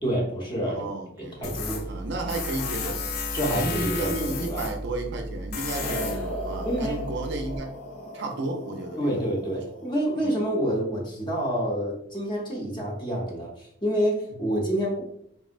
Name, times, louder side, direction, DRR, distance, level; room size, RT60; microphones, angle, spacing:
voice 1, 0.0-0.9 1.2-1.9 3.3-4.7 6.6-7.1 9.0-15.0, equal, 20° left, 0.7 m, -28 dB
voice 2, 0.7-3.0 3.5-7.7 8.1-9.2 10.2-10.4, right 2 dB, 55° right, 0.4 m, -33 dB
Tools, 1.4-7.6, left 2 dB, 50° left, 0.3 m, -33 dB
sound 1, 5.8-10.2, equal, 70° left, 0.8 m, -37 dB
3.6 x 2.0 x 2.4 m
head